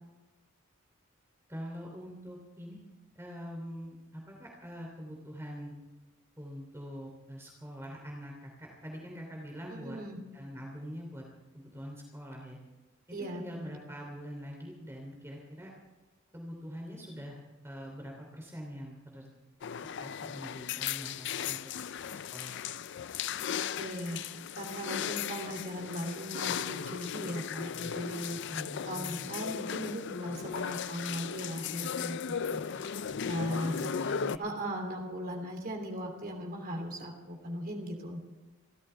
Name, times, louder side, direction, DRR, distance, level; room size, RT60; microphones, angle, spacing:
voice 1, 1.5-2.8 3.1-5.7 6.4-10.0 10.3-11.2 11.5-12.6 13.1-15.7 16.3-17.4 17.6-19.3 19.8-21.7 22.3-22.6 28.5-29.3 32.7-32.8 33.1-34.4, equal, 10° right, -1 dB, 3.0 m, -44 dB
voice 2, 9.7-10.2 13.1-13.8 23.5-28.4 28.8-32.2 32.5-32.9 33.2-33.9 34.4-38.2, equal, 45° right, 2 dB, 3.1 m, -38 dB
sound 1, 19.6-34.4, left 8 dB, 55° left, 0.4 m, -36 dB
29.0 x 14.0 x 3.4 m, 1.2 s
head